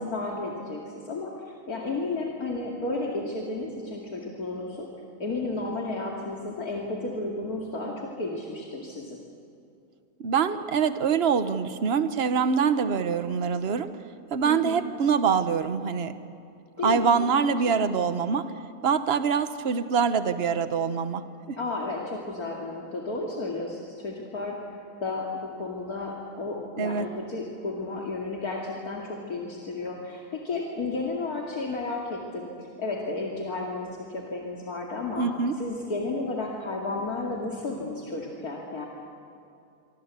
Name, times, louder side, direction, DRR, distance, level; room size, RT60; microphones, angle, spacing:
voice 1, 0.0-4.9 5.2-9.2 14.4-14.8 16.8-17.5 17.8-18.0 21.5-24.6 25.0-35.3 35.6-38.9, left 3 dB, 65° left, -1 dB, 2.9 m, -33 dB
voice 2, 10.2-13.9 14.3-16.1 16.8-18.4 18.8-21.6 26.8-27.1 35.2-35.5, right 6 dB, 45° right, 11 dB, 1.2 m, -24 dB
26.5 x 24.5 x 8.4 m, 2.6 s
omnidirectional pair, 1.7 m